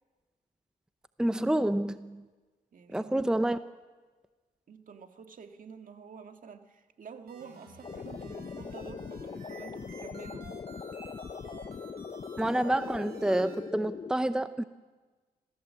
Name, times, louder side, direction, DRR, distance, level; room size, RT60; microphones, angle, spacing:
voice 1, 1.2-2.2 2.9-3.6 12.4-14.6, right 1 dB, 5° right, 11 dB, 0.7 m, -28 dB
voice 2, 2.7-3.2 4.7-10.5, right 6 dB, 60° right, 6 dB, 1.9 m, -49 dB
sound 1, 7.3-13.6, right 3 dB, 90° right, 7.0 m, -51 dB
sound 2, 7.8-14.1, left 5 dB, 40° left, 0.8 m, -41 dB
28.5 x 15.0 x 7.6 m, 1.3 s
cardioid pair, 85°, 16 cm